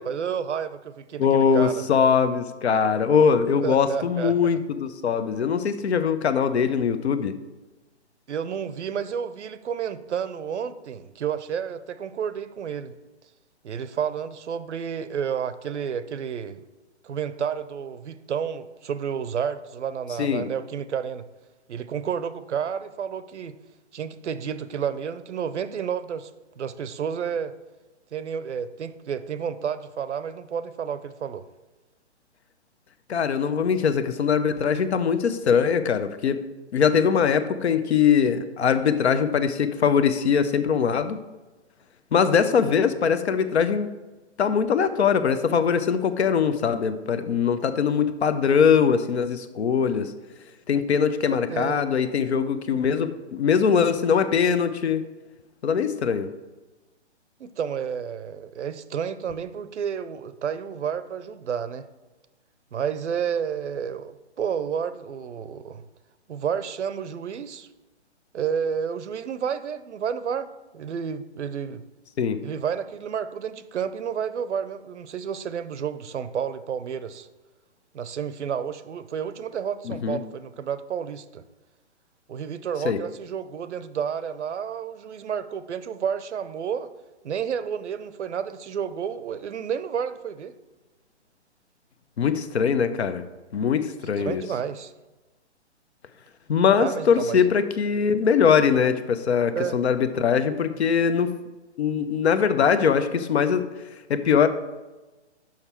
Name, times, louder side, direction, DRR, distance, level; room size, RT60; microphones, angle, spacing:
voice 1, 0.0-2.0 3.6-4.5 8.3-12.9 13.6-16.6 17.0-21.3 21.7-23.6 23.9-26.3 26.6-27.5 28.1-31.4 51.3-51.8 57.4-61.9 62.7-65.8 66.3-67.7 68.3-70.5 70.7-71.8 72.4-77.3 77.9-81.4 82.3-86.9 87.2-90.5 94.2-94.9 96.8-97.4 99.5-99.8, right 7 dB, 80° right, 14 dB, 0.6 m, -30 dB
voice 2, 1.2-7.3 20.2-20.5 33.1-36.4 36.7-41.2 42.1-43.9 44.4-50.1 50.7-55.0 55.6-56.3 72.2-72.4 79.9-80.2 82.8-83.0 92.2-93.2 93.5-94.4 96.5-101.3 101.8-103.6 104.1-104.5, left 6 dB, 70° left, 12 dB, 0.7 m, -22 dB
6.5 x 5.8 x 4.4 m, 1.1 s
hypercardioid pair, 145°, 35 cm